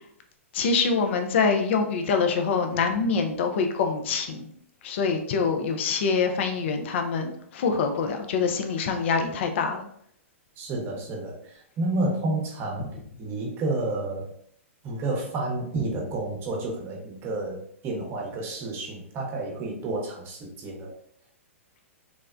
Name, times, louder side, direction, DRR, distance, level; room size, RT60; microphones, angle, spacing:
voice 1, 0.5-4.5 4.8-9.9, left 5 dB, 55° left, 5 dB, 0.4 m, -25 dB
voice 2, 10.6-12.8 13.2-14.3 14.8-20.9, right 2 dB, 30° right, -1 dB, 0.8 m, -30 dB
3.4 x 2.1 x 2.4 m, 0.66 s
hypercardioid pair, 115°, 8 cm